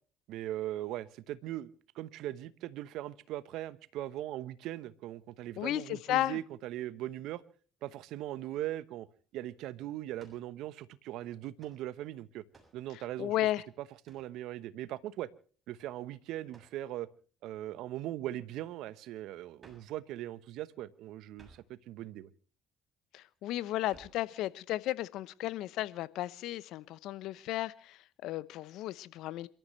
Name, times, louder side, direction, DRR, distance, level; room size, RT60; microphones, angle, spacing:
voice 1, 0.3-7.4 7.8-9.1 9.3-12.4 12.7-13.3 14.1-15.3 15.7-17.1 17.4-22.3, right 14 dB, 70° right, 1.0 m, -40 dB
voice 2, 5.6-6.4 13.2-13.6 23.1-29.5, left 14 dB, 70° left, 0.9 m, -34 dB
sound 1, 10.2-10.5 11.6-11.8 12.5-12.8 14.0-14.3 16.5-16.8 19.6-20.0 21.3-21.7 23.9-24.3, right 3 dB, 30° right, 7.0 m, -59 dB
28.0 x 14.0 x 3.2 m
hypercardioid pair, 60°, 0 cm